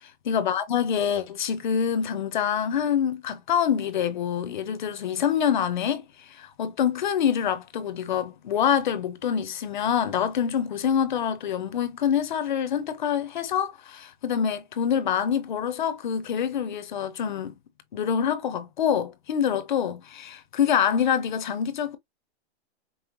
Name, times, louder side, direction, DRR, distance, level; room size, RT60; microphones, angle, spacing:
voice 1, 0.2-17.5 17.9-22.0, left 8 dB, 45° left, 0.7 m, -26 dB
5.5 x 2.1 x 3.0 m
hypercardioid pair, 175°, 33 cm